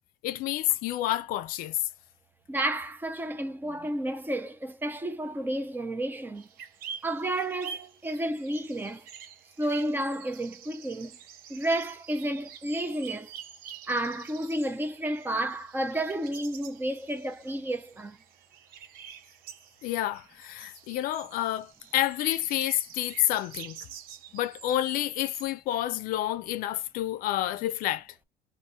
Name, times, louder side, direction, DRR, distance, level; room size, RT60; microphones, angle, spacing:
voice 1, 0.2-1.8 19.8-23.8 24.3-28.1, left 13 dB, 65° left, 0.5 m, -29 dB
voice 2, 2.5-6.4 7.0-9.1 9.6-11.2 11.5-13.3 13.9-18.2, right 1 dB, 15° right, 0.5 m, -31 dB
sound 1, 6.4-25.5, right 8 dB, 70° right, 0.7 m, -47 dB
2.9 x 2.5 x 4.2 m
cardioid pair, 145°, 16 cm